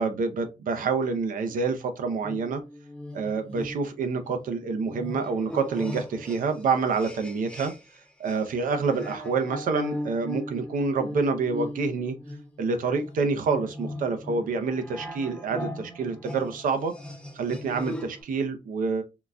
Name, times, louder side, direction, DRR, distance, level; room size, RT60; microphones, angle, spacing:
voice 1, 0.0-2.6 3.1-7.7 8.2-12.2 12.6-16.9 17.3-19.0, right 4 dB, 85° right, 0.6 m, -27 dB
sound 1, 2.2-8.0 8.3-18.2, left 1 dB, 10° left, 0.6 m, -39 dB
3.7 x 2.2 x 2.4 m
wide cardioid pair, 160°, 14 cm